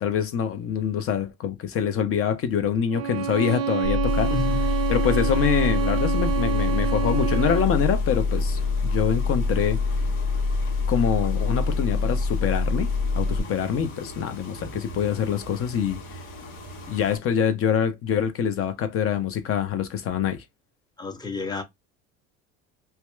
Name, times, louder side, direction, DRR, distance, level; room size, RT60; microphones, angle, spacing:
voice 1, 0.0-4.3 4.9-9.8 10.9-16.2 16.9-20.4, left 8 dB, 45° left, 0.7 m, -25 dB
Bowed string instrument, 2.9-7.8, right 7 dB, 90° right, 0.5 m, -27 dB
sound 1, 3.8-13.4, left 3 dB, 90° left, 1.1 m, -25 dB
sound 2, 4.1-17.2, equal, 70° left, 1.3 m, -41 dB
voice 2, 21.0-21.6, left 4 dB, 15° left, 0.7 m, -30 dB
2.8 x 2.2 x 2.3 m
supercardioid pair, 90°, 30 cm